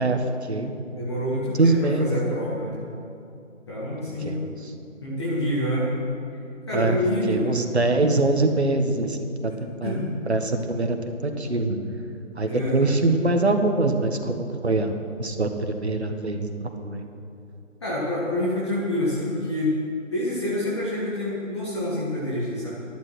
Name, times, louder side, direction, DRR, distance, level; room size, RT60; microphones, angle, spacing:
voice 1, 0.0-1.0 1.5-2.4 4.2-4.7 6.7-7.0 7.2-9.3 9.6-11.8 12.4-14.9 15.2-17.0, right 2 dB, 55° right, 5 dB, 1.5 m, -24 dB
voice 2, 0.9-2.8 3.7-4.4 5.0-5.9 6.7-7.5 9.8-10.1 12.4-12.9 17.8-19.7 20.1-22.7, left 1 dB, 20° left, -8 dB, 1.8 m, -27 dB
14.0 x 11.0 x 6.3 m, 2.6 s
figure-of-eight pair, 165°, 39 cm